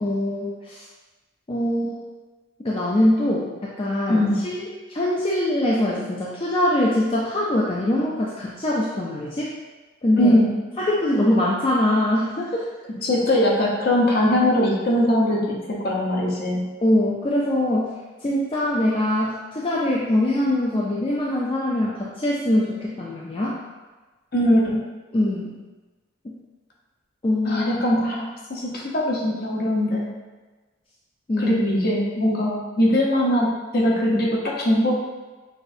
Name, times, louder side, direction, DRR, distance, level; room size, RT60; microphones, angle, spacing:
voice 1, 0.0-0.9 1.5-2.1 2.6-9.5 10.0-10.4 10.8-12.7 16.8-18.0 18.2-23.6 25.1-25.6 26.2-26.3 27.2-27.7 31.3-31.6, left 1 dB, 30° left, -5 dB, 0.4 m, -23 dB
voice 2, 10.2-10.5 13.0-16.6 24.3-24.8 27.4-30.1 31.4-34.9, left 1 dB, 50° left, -3 dB, 0.8 m, -21 dB
5.9 x 2.6 x 2.6 m, 1.2 s
head